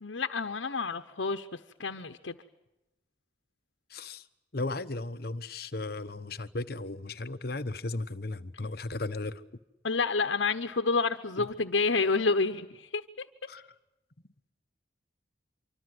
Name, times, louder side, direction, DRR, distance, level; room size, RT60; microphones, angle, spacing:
voice 1, 0.0-1.5 1.8-2.4 9.8-13.3, left 4 dB, 80° left, 1.1 m, -29 dB
voice 2, 3.9-4.3 4.5-9.4 11.4-11.5 13.5-13.7, left 2 dB, 55° left, 1.0 m, -36 dB
25.5 x 25.0 x 8.0 m
head